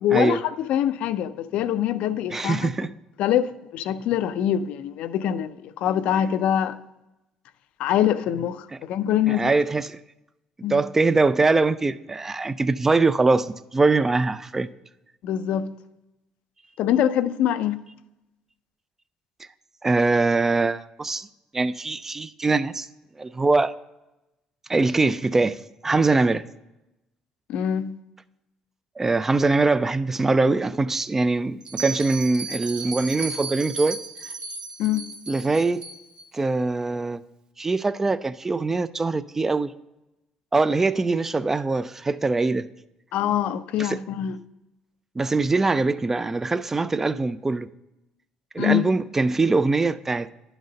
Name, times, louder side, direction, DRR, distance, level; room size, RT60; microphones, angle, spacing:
voice 1, 0.0-2.7 3.2-6.8 7.8-9.5 10.6-10.8 15.2-15.7 16.8-17.8 27.5-27.9 34.8-35.1 43.1-44.4 48.6-48.8, left 10 dB, 75° left, 0.5 m, -24 dB
voice 2, 2.3-2.9 9.3-10.0 10.7-14.7 19.8-21.3 21.5-22.9 23.2-23.7 24.7-25.6 25.8-26.4 29.0-34.0 35.3-35.9 36.3-37.2 37.6-39.7 40.5-42.7 43.8-44.0 45.2-47.7 48.5-50.3, right 3 dB, 15° right, 0.3 m, -22 dB
Bell, 31.6-36.2, right 4 dB, 45° right, 0.7 m, -35 dB
11.0 x 4.0 x 5.1 m
cardioid pair, 100°, 2 cm